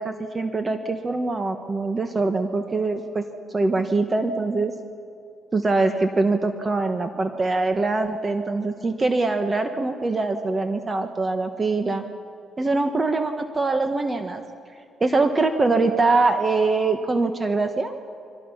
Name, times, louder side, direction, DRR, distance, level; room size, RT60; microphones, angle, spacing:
voice 1, 0.0-3.2 3.5-4.7 5.5-12.0 12.6-14.4 15.0-17.9, right 3 dB, 30° right, 6 dB, 1.5 m, -23 dB
29.5 x 24.5 x 5.8 m, 2.4 s
cardioid pair, 90°, 0 cm